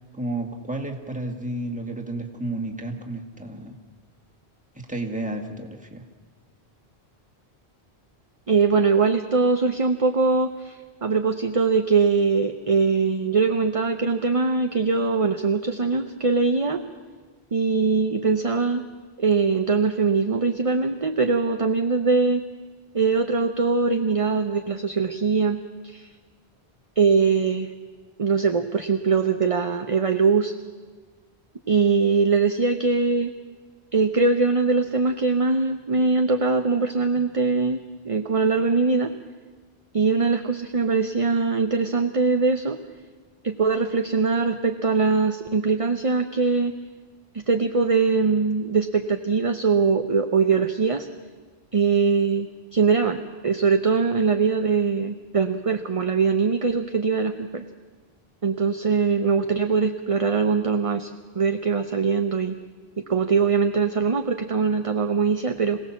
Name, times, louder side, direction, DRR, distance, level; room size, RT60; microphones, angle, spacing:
voice 1, 0.1-3.8 4.8-6.0, right 2 dB, 5° right, 1 dB, 2.1 m, -31 dB
voice 2, 8.5-16.8 17.5-18.8 19.2-22.4 22.9-26.1 27.0-27.7 28.2-30.5 31.7-33.3 33.9-39.1 39.9-42.8 43.4-46.7 47.3-51.1 51.7-53.2 53.4-57.6 58.4-62.6 63.0-65.8, right 4 dB, 35° right, 7 dB, 0.8 m, -22 dB
26.5 x 17.5 x 7.3 m, 1.5 s
omnidirectional pair, 1.1 m